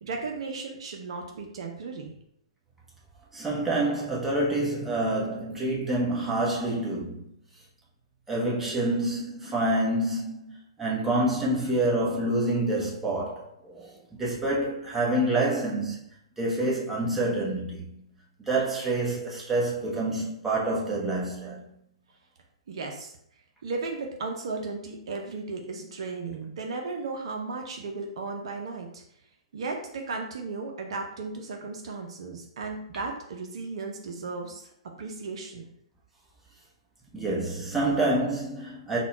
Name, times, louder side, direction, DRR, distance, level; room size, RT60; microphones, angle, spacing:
voice 1, 0.0-2.1 22.7-23.1 23.6-29.0 29.5-34.7 35.0-35.6, right 3 dB, 60° right, 0.6 m, -35 dB
voice 2, 3.3-7.3 8.3-13.5 13.7-13.9 14.2-16.0 16.4-18.0 18.5-21.6 37.1-39.0, right 1 dB, 10° right, 1.1 m, -27 dB
4.1 x 2.3 x 4.1 m
figure-of-eight pair, 120°, 3 cm